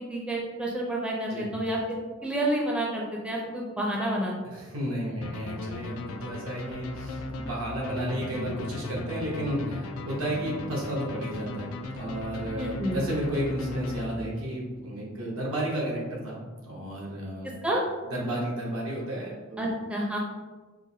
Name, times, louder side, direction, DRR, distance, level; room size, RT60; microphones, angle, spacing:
voice 1, 0.1-4.3 8.3-8.4 12.6-13.0 17.6-17.8 19.6-20.2, right 1 dB, 5° right, -2 dB, 0.4 m, -29 dB
voice 2, 4.4-17.6 18.0-19.6, right 1 dB, 85° right, -3 dB, 1.0 m, -32 dB
sound 1, 5.2-14.5, left 2 dB, 90° left, 0.4 m, -37 dB
4.7 x 2.0 x 2.7 m, 1.3 s
head